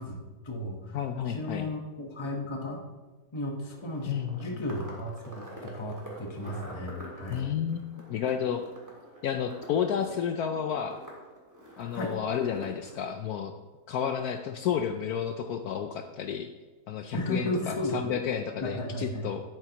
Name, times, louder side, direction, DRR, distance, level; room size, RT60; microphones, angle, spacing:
voice 1, 0.0-1.0 1.3-2.8 3.3-7.4 11.9-12.2 17.1-18.2 18.6-19.3, left 1 dB, 20° left, 1 dB, 1.0 m, -34 dB
voice 2, 0.9-1.7 4.1-4.4 7.3-7.8 8.1-8.7 9.2-11.0 11.8-13.5 13.9-16.5 16.9-19.4, left 8 dB, 70° left, 6 dB, 1.0 m, -31 dB
sound 1, 3.7-13.1, right 1 dB, 10° right, 2.0 m, -46 dB
11.0 x 9.1 x 2.9 m, 1.2 s
omnidirectional pair, 1.8 m